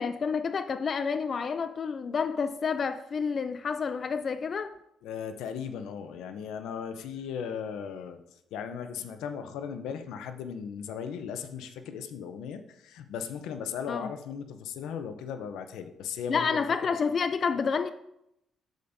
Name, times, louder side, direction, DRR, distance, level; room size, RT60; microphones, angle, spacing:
voice 1, 0.0-4.7 13.9-14.1 16.3-17.9, left 5 dB, 45° left, 0.4 m, -29 dB
voice 2, 5.0-8.2 8.5-17.0, left 7 dB, 90° left, 0.7 m, -37 dB
12.5 x 5.1 x 2.7 m
cardioid pair, 90°, 0 cm